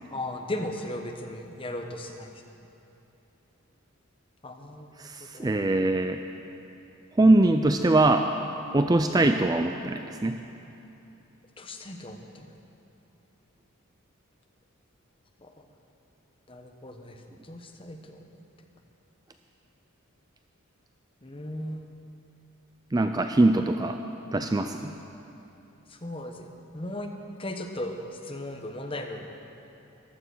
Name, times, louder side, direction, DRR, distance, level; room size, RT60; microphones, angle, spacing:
voice 1, 0.1-2.3 4.4-5.5 11.6-12.5 15.4-15.7 16.5-18.4 21.2-21.8 25.9-27.1 27.4-29.3, left 1 dB, 25° left, 4 dB, 1.1 m, -37 dB
voice 2, 5.0-6.2 7.2-8.3 8.7-10.4 22.9-24.0 24.3-24.9, right 2 dB, 20° right, 6 dB, 0.4 m, -22 dB
15.0 x 12.0 x 6.2 m, 2.9 s
head